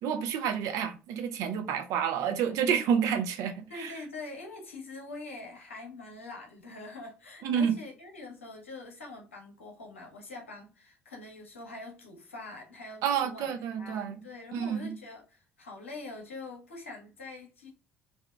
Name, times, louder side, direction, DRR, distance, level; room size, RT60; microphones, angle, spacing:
voice 1, 0.0-3.9 7.4-7.7 13.0-14.2 14.5-14.9, right 7 dB, 55° right, 0.5 m, -29 dB
voice 2, 3.7-17.7, left 3 dB, 85° left, 0.6 m, -44 dB
2.7 x 2.3 x 2.2 m
figure-of-eight pair, 55°, 7 cm